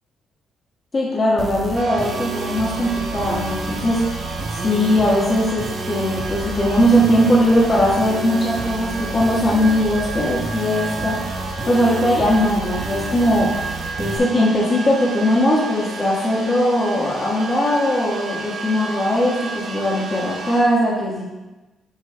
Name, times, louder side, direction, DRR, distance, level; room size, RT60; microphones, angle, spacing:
voice 1, 0.9-4.1 4.5-11.2 11.7-13.6 14.0-21.3, equal, 35° left, -6 dB, 1.4 m, -19 dB
sound 1, 1.4-14.2, right 3 dB, 40° right, 0.7 m, -31 dB
sound 2, 1.7-20.6, right 3 dB, 75° right, 1.8 m, -32 dB
7.6 x 6.1 x 2.2 m, 1.1 s
cardioid pair, 90°, 0 cm